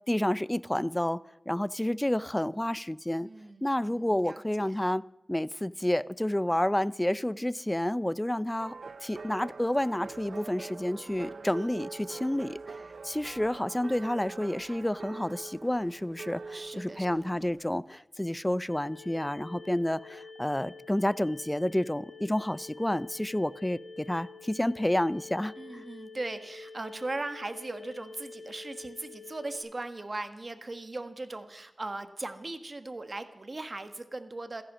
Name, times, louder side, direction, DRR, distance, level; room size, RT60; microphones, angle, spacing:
voice 1, 0.1-1.2 1.5-3.3 3.6-5.0 5.3-8.7 9.0-25.9, left 1 dB, 15° left, 0.5 m, -30 dB
voice 2, 3.2-4.8 16.5-17.3 25.6-34.6, right 2 dB, 45° right, 1.5 m, -39 dB
sound 1, 8.6-17.8, right 4 dB, 80° right, 0.5 m, -44 dB
sound 2, 18.7-29.6, left 4 dB, 55° left, 3.4 m, -48 dB
16.5 x 14.0 x 6.2 m
wide cardioid pair, 60°, 0 cm